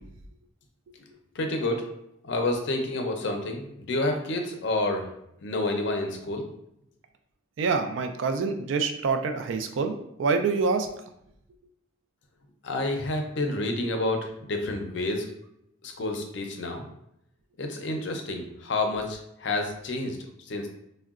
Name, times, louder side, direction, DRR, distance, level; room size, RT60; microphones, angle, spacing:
voice 1, 1.3-1.9 2.2-5.1 5.4-6.5 12.6-15.3 15.8-16.8 17.6-20.7, left 2 dB, 60° left, 4 dB, 0.5 m, -29 dB
voice 2, 7.6-10.9, right 4 dB, 70° right, 6 dB, 0.3 m, -26 dB
3.6 x 2.1 x 2.4 m, 0.77 s
head